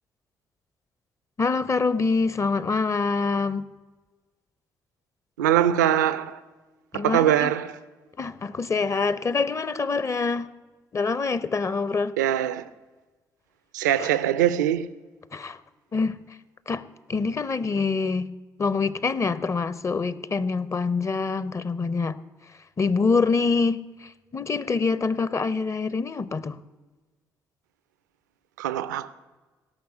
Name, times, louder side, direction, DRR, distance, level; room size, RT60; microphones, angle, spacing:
voice 1, 1.4-3.7 6.9-7.5 8.2-10.5 10.9-12.1 14.0-14.1 15.3-15.6 15.9-16.2 16.7-16.8 17.1-18.3 18.6-22.2 22.8-26.6, left 4 dB, 30° left, 0.7 m, -25 dB
voice 2, 5.4-6.4 6.9-7.8 12.2-12.6 13.7-14.9 28.6-29.1, right 11 dB, 80° right, 0.5 m, -22 dB
16.5 x 6.4 x 8.1 m
figure-of-eight pair, 45°, 10 cm